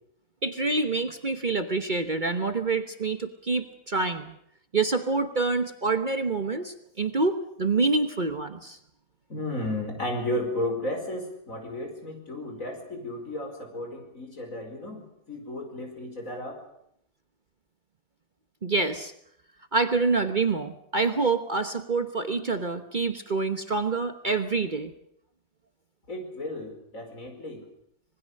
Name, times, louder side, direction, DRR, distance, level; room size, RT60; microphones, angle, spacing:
voice 1, 0.4-4.3 4.7-8.8 18.6-19.1 19.7-24.9, right 3 dB, 35° right, 8 dB, 1.2 m, -26 dB
voice 2, 9.3-16.6 26.1-27.6, left 1 dB, 65° left, 4 dB, 5.2 m, -33 dB
26.5 x 20.0 x 6.5 m, 0.73 s
omnidirectional pair, 1.5 m